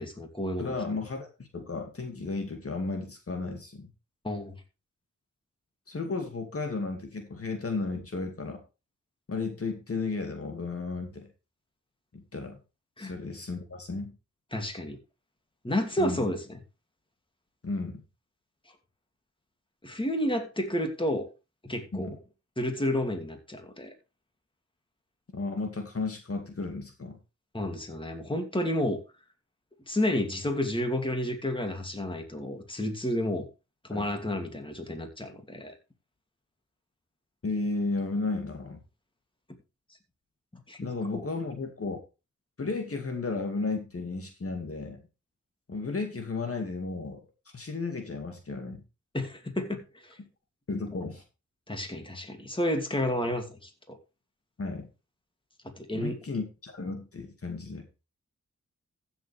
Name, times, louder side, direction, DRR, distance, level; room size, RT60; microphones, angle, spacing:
voice 1, 0.0-0.7 4.2-4.6 13.0-13.1 14.5-15.0 15.6-16.6 19.8-21.3 21.6-22.1 22.6-23.9 27.5-29.0 29.9-33.5 33.9-35.7 40.7-40.8 41.1-41.2 49.1-50.2 51.7-54.0 55.8-56.2, left 1 dB, 15° left, 5 dB, 2.7 m, -31 dB
voice 2, 0.6-3.9 5.9-8.6 9.3-11.3 12.1-12.6 13.0-14.1 16.0-16.2 17.6-18.0 21.9-22.2 25.3-27.2 33.9-34.1 37.4-38.8 40.8-42.0 42.6-45.0 45.7-47.2 47.5-48.8 50.7-51.2 54.6-54.9 55.9-57.8, left 3 dB, 50° left, 5 dB, 2.3 m, -33 dB
15.0 x 7.3 x 3.4 m, 0.29 s
wide cardioid pair, 80°, 29 cm